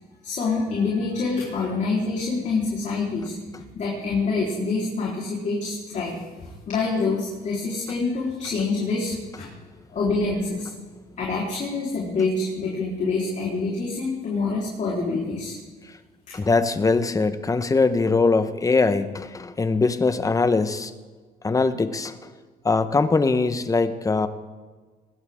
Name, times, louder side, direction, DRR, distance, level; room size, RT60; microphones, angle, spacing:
voice 1, 0.2-3.3 3.7-9.5 9.9-10.7 11.2-15.6 16.3-16.4, left 3 dB, 45° left, -4 dB, 4.1 m, -26 dB
voice 2, 16.3-20.9 21.4-22.2 22.6-24.3, left 3 dB, 20° left, 11 dB, 1.1 m, -21 dB
20.5 x 17.0 x 3.7 m, 1.4 s
cardioid pair, 110°, 17 cm